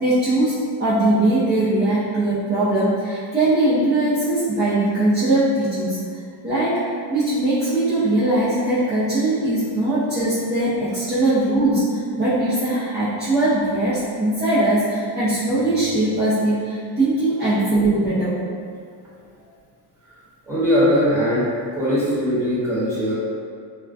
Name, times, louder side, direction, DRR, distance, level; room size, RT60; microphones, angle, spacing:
voice 1, 0.0-6.0 6.4-18.4, right 1 dB, 25° right, -12 dB, 0.5 m, -20 dB
voice 2, 20.5-21.5 21.7-23.1, equal, 5° right, -12 dB, 0.9 m, -20 dB
2.3 x 2.1 x 2.5 m, 2.2 s
cardioid pair, 120°, 46 cm